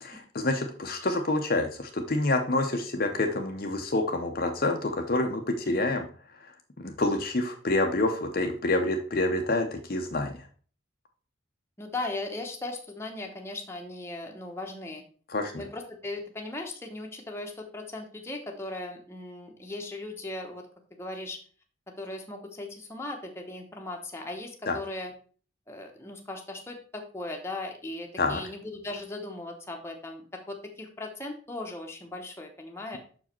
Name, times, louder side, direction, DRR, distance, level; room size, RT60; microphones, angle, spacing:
voice 1, 0.3-6.0 6.4-6.5 6.8-10.4 15.3-15.6 24.7-24.8 28.2-28.4, left 2 dB, 45° left, 4 dB, 0.7 m, -27 dB
voice 2, 11.8-15.0 15.6-20.7 21.0-21.4 22.0-25.1 25.7-33.0, left 2 dB, 15° left, 1 dB, 1.0 m, -38 dB
6.3 x 4.8 x 4.4 m, 0.42 s
head